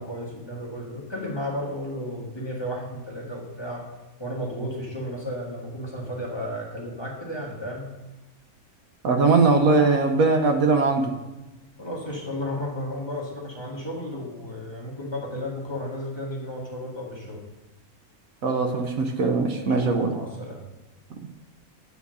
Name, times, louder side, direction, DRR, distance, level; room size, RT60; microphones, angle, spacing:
voice 1, 0.0-3.8 4.2-7.9 11.8-17.4 19.5-20.6, equal, 15° left, -4 dB, 1.5 m, -33 dB
voice 2, 9.0-11.1 18.4-20.1, right 3 dB, 70° right, 4 dB, 1.2 m, -20 dB
8.3 x 4.4 x 6.3 m, 1.0 s
omnidirectional pair, 1.6 m